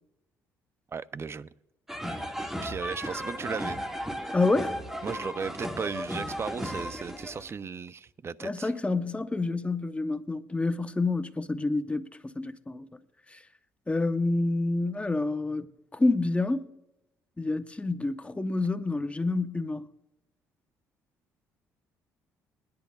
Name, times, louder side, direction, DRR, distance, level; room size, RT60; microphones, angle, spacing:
voice 1, 0.9-1.5 2.6-3.8 5.0-8.7, right 6 dB, 35° right, 0.5 m, -36 dB
sound 1, 1.9-7.5, equal, 5° right, 1.8 m, -35 dB
voice 2, 4.3-4.7 8.4-13.0 13.3-13.4 13.9-16.6 17.4-19.9, left 2 dB, 15° left, 0.9 m, -28 dB
21.0 x 10.5 x 2.3 m
supercardioid pair, 65°, 7 cm